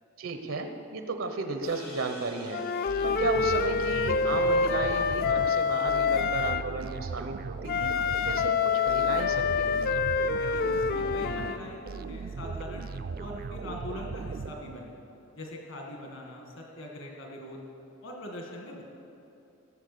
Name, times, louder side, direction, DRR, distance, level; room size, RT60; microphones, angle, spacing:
voice 1, 0.2-2.6 3.0-7.9 8.2-10.0, right 3 dB, 85° right, 6 dB, 0.9 m, -34 dB
sound 1, 1.6-6.2, left 2 dB, 85° left, 3.2 m, -49 dB
Wind instrument woodwind instrument, 2.5-6.7 7.7-11.6, left 5 dB, 45° left, 0.4 m, -27 dB
sound 2, 2.9-15.1, right 4 dB, 45° right, 0.3 m, -38 dB
voice 2, 10.4-15.0 15.3-17.6 18.0-18.8, left 1 dB, 70° left, 0 dB, 1.9 m, -42 dB
15.5 x 6.8 x 6.8 m, 2.8 s
head